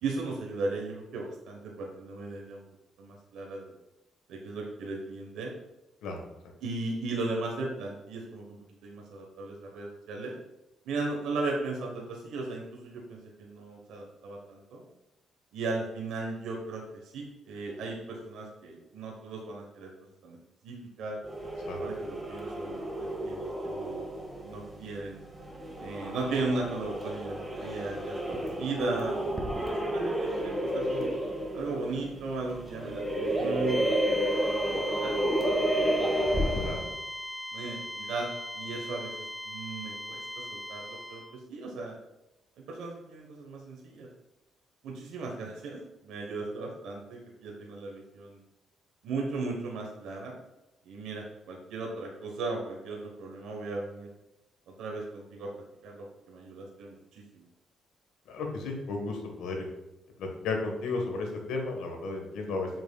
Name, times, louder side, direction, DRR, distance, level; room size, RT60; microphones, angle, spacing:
voice 1, 0.0-2.6 3.0-3.8 4.3-5.5 6.6-10.3 10.9-14.8 15.5-19.9 20.2-20.4 20.6-21.2 21.8-24.0 24.4-25.2 25.8-29.5 29.8-31.1 31.5-34.0 35.0-35.1 35.5-35.6 36.0-36.1 36.6-36.7 37.5-38.3 38.5-42.0 42.6-44.1 44.8-48.4 49.0-50.4 50.8-54.1 54.8-55.5 55.8-57.5, right 3 dB, 85° right, -1 dB, 1.1 m, -36 dB
sound 1, 21.2-36.9, right 1 dB, 15° right, 1.7 m, -31 dB
sound 2, 33.7-41.4, equal, ahead, 0.4 m, -39 dB
voice 2, 58.3-59.7 60.2-62.7, left 3 dB, 90° left, 2 dB, 1.3 m, -33 dB
7.1 x 5.9 x 2.3 m, 0.94 s
cardioid pair, 90°, 0 cm